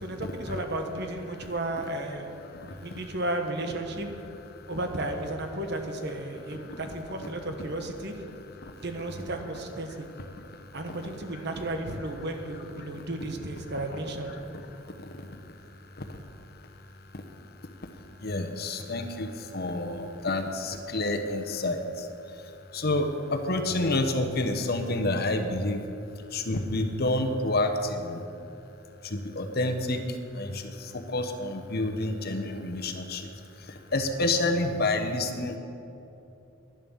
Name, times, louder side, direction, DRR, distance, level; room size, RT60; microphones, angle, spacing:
voice 1, 0.0-2.3 2.6-4.1 4.7-8.1 8.8-10.1 10.7-14.4, right 1 dB, 55° right, 5 dB, 1.3 m, -33 dB
voice 2, 2.5-3.0 6.6-6.8 8.6-8.8 10.3-10.6 10.9-11.0 12.8-13.1 14.7-15.4 16.0-16.1 17.1-17.2 18.2-22.1 22.7-25.9 26.3-28.2 29.0-33.3 33.6-35.6, left 2 dB, 50° left, 6 dB, 1.0 m, -29 dB
11.0 x 10.5 x 7.1 m, 2.9 s
head